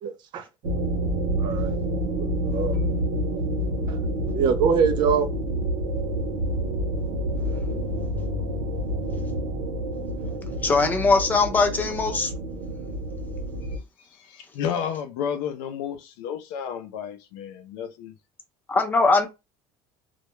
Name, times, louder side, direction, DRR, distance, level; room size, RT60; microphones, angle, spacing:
voice 1, 0.0-0.4 1.4-1.8 2.4-2.8 4.3-5.3, right 6 dB, 45° right, 0.4 m, -23 dB
sound 1, 0.6-13.8, right 1 dB, 80° right, 0.9 m, -28 dB
Keyboard (musical), 2.7-4.6, left 3 dB, 65° left, 0.9 m, -41 dB
voice 2, 10.6-12.3 18.7-19.3, left 3 dB, 15° left, 0.5 m, -21 dB
voice 3, 14.2-18.1, left 8 dB, 90° left, 0.5 m, -31 dB
2.2 x 2.1 x 3.0 m
cardioid pair, 155°, 11 cm